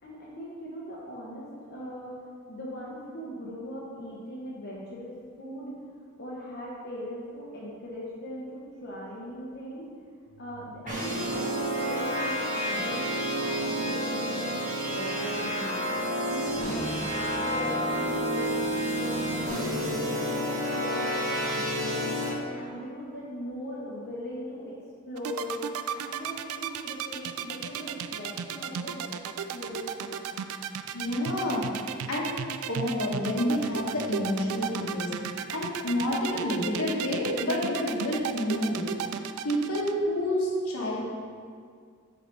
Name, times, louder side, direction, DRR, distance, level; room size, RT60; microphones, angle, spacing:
voice 1, 0.0-2.2 2.5-5.7 6.2-9.9 10.4-15.8 16.2-18.5 18.9-22.1 22.5-24.8 25.1-25.6 25.9-29.1 29.5-30.2, equal, 50° left, -5 dB, 1.0 m, -39 dB
sound 1, 10.9-22.3, equal, 40° right, 1.3 m, -29 dB
sound 2, 25.2-39.9, right 8 dB, 80° right, 0.3 m, -34 dB
voice 2, 30.9-31.6 32.1-32.3 32.7-35.1 35.5-38.9 39.4-41.0, left 1 dB, 75° left, -4 dB, 1.3 m, -28 dB
7.2 x 4.0 x 4.6 m, 2.1 s
head